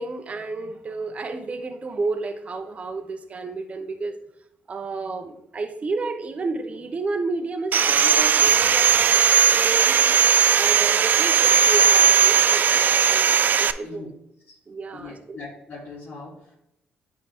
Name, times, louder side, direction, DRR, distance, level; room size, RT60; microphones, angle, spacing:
voice 1, 0.0-4.2 4.7-10.1 10.6-13.3 13.6-14.1 14.7-15.4, right 3 dB, 35° right, 6 dB, 0.8 m, -31 dB
Sawing, 7.7-13.7, right 7 dB, 55° right, 0.4 m, -18 dB
voice 2, 13.8-14.1 14.5-14.6 14.9-16.5, left 3 dB, 65° left, -9 dB, 2.7 m, -40 dB
9.6 x 3.8 x 3.6 m, 0.84 s
cardioid pair, 90°, 4 cm